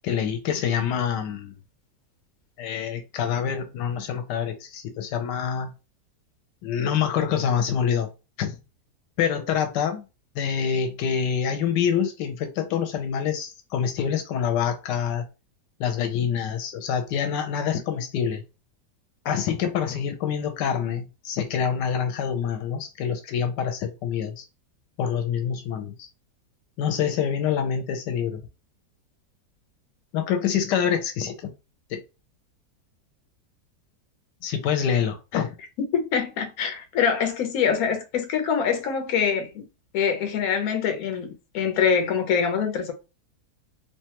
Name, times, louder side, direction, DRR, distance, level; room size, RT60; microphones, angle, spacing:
voice 1, 0.0-1.6 2.6-5.7 6.6-8.1 8.4-8.6 9.2-10.0 10.3-15.2 15.8-18.4 19.2-24.4 25.0-26.1 26.8-28.4 30.1-31.5 31.9-32.0 34.4-35.5, left 8 dB, 85° left, 1.2 m, -26 dB
voice 2, 35.9-39.7 39.9-42.9, left 7 dB, 65° left, 1.1 m, -24 dB
3.1 x 2.2 x 2.8 m
omnidirectional pair, 1.8 m